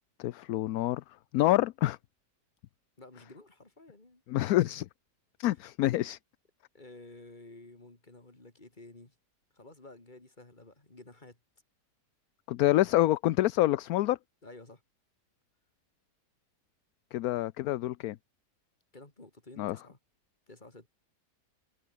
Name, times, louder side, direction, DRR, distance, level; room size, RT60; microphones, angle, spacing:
voice 1, 0.2-1.0 1.3-2.0 4.3-4.9 5.4-6.2 12.5-14.2 17.1-18.2 19.6-19.8, left 15 dB, 70° left, 1.0 m, -27 dB
voice 2, 3.0-4.2 6.7-9.1 9.5-11.4 14.4-14.8 18.9-20.0 20.5-20.9, left 2 dB, 25° left, 3.5 m, -52 dB
omnidirectional pair, 1.8 m